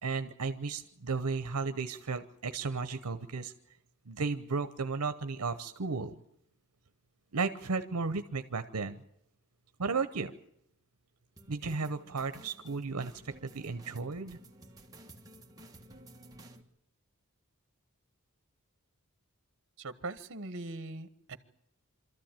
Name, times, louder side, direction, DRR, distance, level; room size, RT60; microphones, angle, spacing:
voice 1, 0.0-3.5 4.1-6.2 7.3-9.0 9.8-10.3 11.5-14.4, right 4 dB, 85° right, 10 dB, 0.9 m, -34 dB
sound 1, 11.4-16.6, right 1 dB, 15° right, 1.6 m, -54 dB
voice 2, 19.8-21.4, right 2 dB, 60° right, 12 dB, 1.3 m, -41 dB
25.0 x 13.5 x 9.0 m, 0.79 s
head